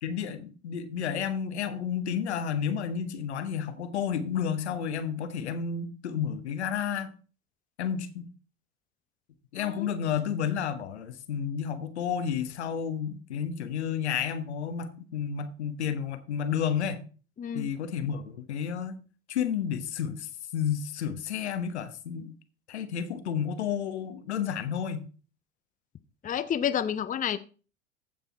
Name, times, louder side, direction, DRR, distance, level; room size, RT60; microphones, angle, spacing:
voice 1, 0.0-7.1 7.8-8.3 9.5-17.0 17.5-19.0 19.3-22.3 22.7-25.1, left 8 dB, 80° left, 1.2 m, -31 dB
voice 2, 17.4-17.7 26.2-27.4, left 9 dB, 25° left, 0.7 m, -30 dB
15.0 x 5.4 x 4.5 m
hypercardioid pair, 75°, 33 cm